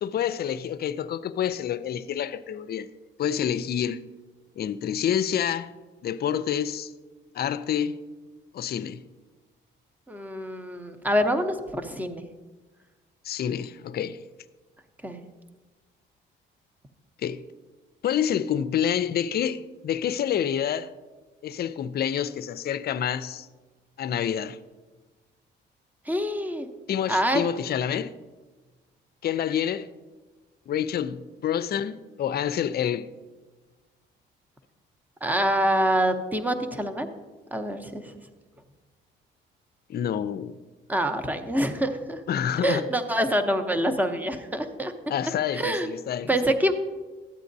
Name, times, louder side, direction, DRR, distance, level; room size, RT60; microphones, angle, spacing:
voice 1, 0.0-2.9 3.2-4.0 4.6-5.7 6.0-6.9 7.3-8.0 8.5-9.0 13.2-14.2 17.2-17.4 18.0-20.9 21.4-23.5 24.0-24.6 26.9-28.1 29.2-29.9 30.7-33.1 39.9-40.6 42.3-42.9 45.1-46.4, left 9 dB, 55° left, 0.4 m, -28 dB
voice 2, 10.1-12.2 15.0-15.2 26.1-26.7 27.1-27.5 35.2-37.1 37.5-38.1 40.9-42.2 42.6-44.9 45.5-45.9 46.3-46.8, equal, 10° right, 0.7 m, -26 dB
13.0 x 8.2 x 2.7 m
cardioid pair, 90°, 20 cm